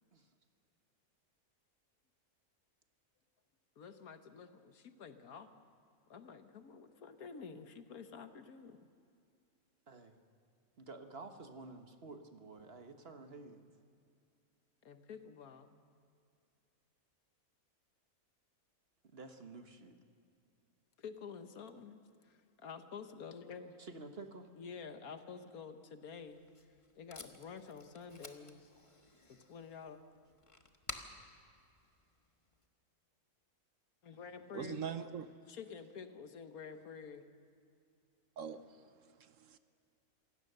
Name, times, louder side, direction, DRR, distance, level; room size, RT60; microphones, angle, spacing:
voice 1, 3.8-5.5 6.1-8.8 14.8-15.8 21.0-23.8 24.6-26.5 27.0-28.7 29.3-30.0 34.0-34.9 35.5-37.4, left 6 dB, 75° left, 8 dB, 1.6 m, -49 dB
voice 2, 9.9-10.2 10.8-13.6 19.1-20.0 23.8-24.5, right 3 dB, 45° right, 6 dB, 1.4 m, -51 dB
Packing tape duct tape, 26.2-32.7, left 2 dB, 25° left, 1.2 m, -53 dB
voice 3, 34.5-35.3 38.4-38.8 39.2-39.6, right 7 dB, 65° right, 11 dB, 1.1 m, -42 dB
27.0 x 17.0 x 6.7 m, 2.4 s
omnidirectional pair, 1.6 m